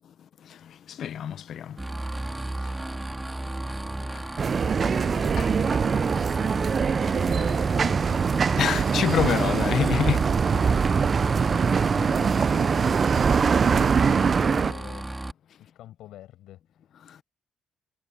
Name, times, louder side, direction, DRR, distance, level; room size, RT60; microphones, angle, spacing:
voice 1, 0.9-1.8 4.1-4.2 5.4-5.5 8.6-10.3, left 9 dB, 65° left, 0.5 m, -26 dB
sound 1, 1.8-15.3, right 1 dB, 10° right, 2.4 m, -34 dB
sound 2, 4.4-14.7, right 6 dB, 45° right, 0.3 m, -23 dB
voice 2, 4.8-6.7 7.0-8.3 10.5-10.9 11.4-15.1 15.6-16.9, left 14 dB, 85° left, 7.1 m, -46 dB
cardioid pair, 90°, 0 cm